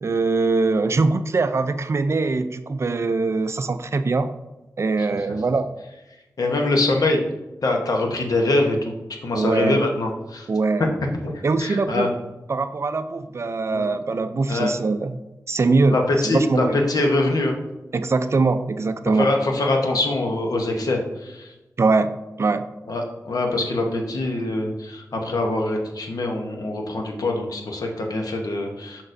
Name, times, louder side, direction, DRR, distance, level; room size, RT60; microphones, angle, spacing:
voice 1, 0.0-4.3 4.8-5.7 9.3-9.8 10.5-10.9 11.4-12.1 12.5-15.2 15.5-16.8 17.9-19.3 21.8-22.7, right 3 dB, 45° right, 10 dB, 0.4 m, -22 dB
voice 2, 6.4-7.2 7.6-8.9 9.2-10.5 11.2-11.3 11.6-12.1 13.7-13.8 14.5-14.7 15.9-17.5 19.2-21.5 22.9-29.0, left 2 dB, 85° left, 2 dB, 1.0 m, -23 dB
6.3 x 5.9 x 2.6 m, 1.0 s
wide cardioid pair, 110°, 6 cm